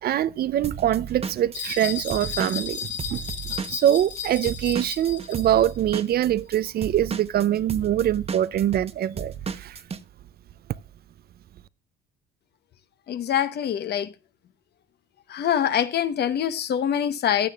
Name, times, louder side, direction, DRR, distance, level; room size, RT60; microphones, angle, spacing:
voice 1, 0.0-9.8, right 11 dB, 55° right, 0.5 m, -24 dB
Drum kit / Drum, 0.6-4.2 4.5-10.0, right 6 dB, 30° right, 0.9 m, -34 dB
sound 1, 1.5-5.7, left 7 dB, 75° left, 5.7 m, -34 dB
voice 2, 13.1-14.1 15.3-17.5, left 9 dB, 60° left, 1.0 m, -24 dB
15.5 x 10.0 x 2.4 m
supercardioid pair, 80°, 19 cm